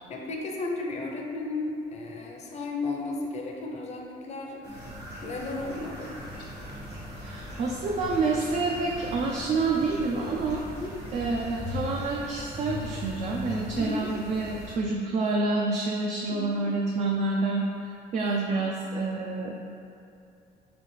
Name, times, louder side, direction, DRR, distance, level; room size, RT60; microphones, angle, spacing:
voice 1, 0.1-4.8 5.2-6.2 10.7-10.9 13.7-14.1 16.3-16.6 18.5-18.6, left 2 dB, 40° left, 0 dB, 0.6 m, -34 dB
sound 1, 4.6-14.7, left 1 dB, 70° right, 1.2 m, -40 dB
sound 2, 6.1-11.9, left 1 dB, 75° left, 1.1 m, -46 dB
voice 2, 7.2-10.6 11.1-17.7 18.1-19.5, right 3 dB, 45° right, -1 dB, 0.4 m, -28 dB
4.0 x 3.7 x 3.2 m, 2.6 s
cardioid pair, 110°, 17 cm